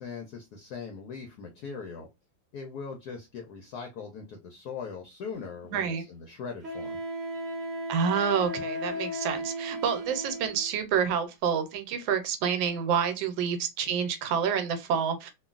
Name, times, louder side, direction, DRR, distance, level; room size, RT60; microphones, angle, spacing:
voice 1, 0.0-2.1 2.5-7.0, left 5 dB, 70° left, 1.0 m, -40 dB
Wind instrument woodwind instrument, 5.3-5.4 6.6-10.7, equal, 30° right, 0.8 m, -35 dB
voice 2, 5.7-6.1 7.9-15.3, right 7 dB, 80° right, 1.4 m, -28 dB
3.0 x 2.4 x 2.3 m
omnidirectional pair, 2.1 m